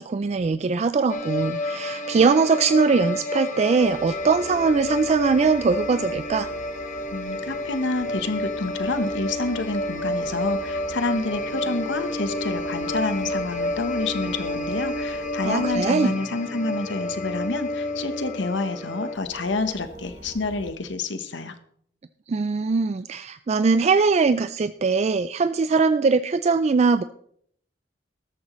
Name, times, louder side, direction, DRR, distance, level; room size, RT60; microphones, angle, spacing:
voice 1, 0.0-6.5 15.4-16.1 22.3-27.0, right 4 dB, 35° right, 12 dB, 0.3 m, -21 dB
sound 1, 1.1-19.1, left 1 dB, 40° left, 1.3 m, -30 dB
sound 2, 3.8-20.7, right 2 dB, 15° right, 3.3 m, -42 dB
voice 2, 7.1-21.6, left 3 dB, 70° left, 10 dB, 1.1 m, -28 dB
13.5 x 13.0 x 3.1 m, 0.66 s
head